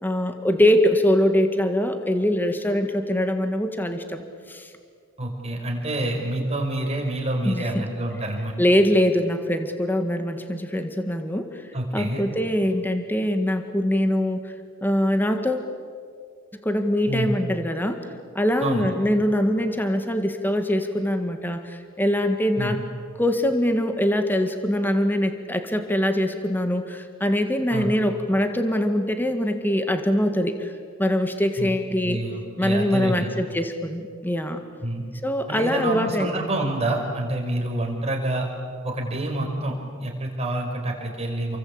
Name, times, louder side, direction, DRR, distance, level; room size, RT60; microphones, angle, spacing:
voice 1, 0.0-4.7 7.5-7.8 8.6-14.5 14.8-15.7 16.5-18.0 18.4-22.8 23.2-30.7 31.0-32.2 32.6-34.6 35.2-36.5, left 1 dB, 10° left, 7 dB, 1.7 m, -23 dB
voice 2, 5.2-8.5 11.7-12.3 17.1-17.4 18.6-18.9 22.6-22.8 27.7-27.9 31.6-31.7 32.0-33.3 34.8-35.0 35.5-38.5 38.8-41.6, right 1 dB, 30° right, 1 dB, 5.3 m, -27 dB
29.0 x 24.0 x 8.6 m, 2.1 s
head